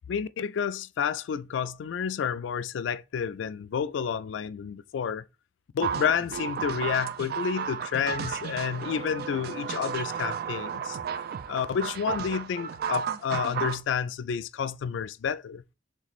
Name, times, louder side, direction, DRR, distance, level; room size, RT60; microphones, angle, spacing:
voice 1, 0.1-5.2 5.7-11.0 11.5-15.6, left 7 dB, 90° left, 0.3 m, -30 dB
sound 1, 5.8-13.8, right 7 dB, 55° right, 0.3 m, -33 dB
3.2 x 3.1 x 4.1 m
head